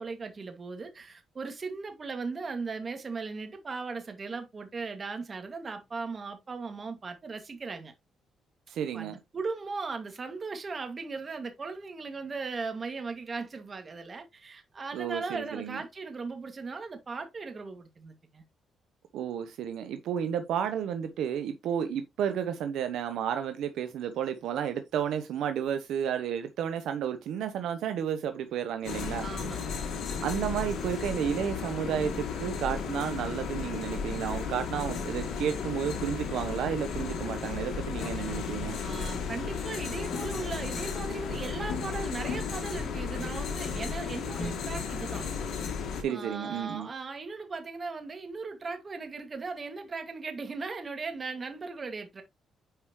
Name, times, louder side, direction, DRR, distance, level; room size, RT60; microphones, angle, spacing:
voice 1, 0.0-7.9 8.9-18.4 29.2-29.9 38.8-45.3 46.1-52.2, right 4 dB, 35° right, 2.2 m, -38 dB
voice 2, 8.7-9.2 14.9-15.8 19.1-29.3 30.2-38.8 46.0-46.9, right 9 dB, 80° right, 0.8 m, -32 dB
sound 1, 28.8-46.0, left 5 dB, 75° left, 2.0 m, -34 dB
9.2 x 4.9 x 3.1 m
cardioid pair, 90°, 0 cm